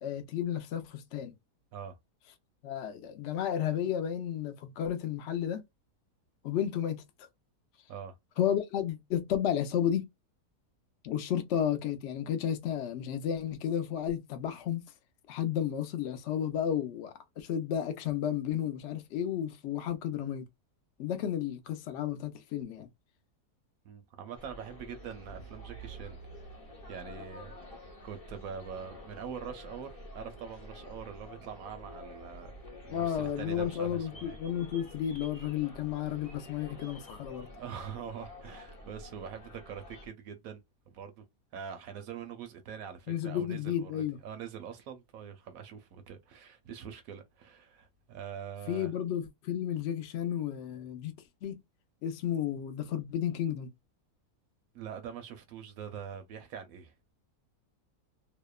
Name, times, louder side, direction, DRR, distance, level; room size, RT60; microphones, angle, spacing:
voice 1, 0.0-1.3 2.6-5.6 6.4-7.0 8.4-10.1 11.0-14.8 15.3-20.5 21.0-22.9 32.9-37.5 43.1-44.2 48.7-51.1 51.4-51.6 52.0-53.7, left 9 dB, 70° left, 0.6 m, -32 dB
voice 2, 23.9-26.2 26.5-26.6 26.9-27.5 28.0-32.5 32.9-34.3 37.6-40.6 40.9-41.2 41.5-48.9 54.7-56.9, right 7 dB, 70° right, 0.9 m, -43 dB
sound 1, 24.3-40.1, equal, 30° left, 0.7 m, -49 dB
2.8 x 2.0 x 2.2 m
omnidirectional pair, 1.7 m